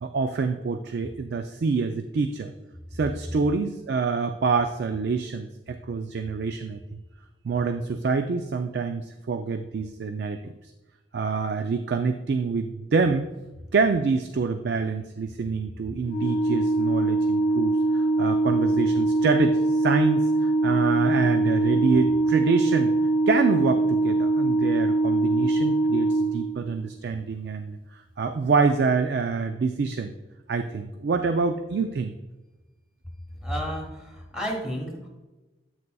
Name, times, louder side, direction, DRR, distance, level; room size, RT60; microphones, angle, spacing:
voice 1, 0.0-2.5 2.9-7.0 7.4-10.5 11.1-13.2 13.7-22.9 23.3-30.1 30.5-32.1, right 4 dB, 60° right, 7 dB, 0.3 m, -26 dB
Organ, 16.1-26.9, right 2 dB, 45° left, 0.4 m, -23 dB
voice 2, 33.4-35.1, equal, 5° right, -1 dB, 1.3 m, -32 dB
8.6 x 6.7 x 2.3 m, 1.1 s
head